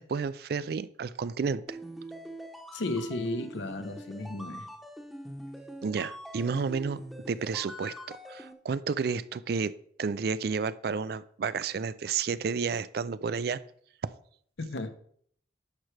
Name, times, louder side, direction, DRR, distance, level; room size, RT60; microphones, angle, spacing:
voice 1, 0.0-1.8 5.8-7.0 7.3-9.7 10.0-13.6, right 5 dB, 55° right, 0.3 m, -31 dB
sound 1, 1.7-8.5, right 1 dB, ahead, 0.8 m, -44 dB
voice 2, 2.7-4.7 14.6-14.9, left 2 dB, 80° left, 0.9 m, -34 dB
10.5 x 6.1 x 3.3 m
head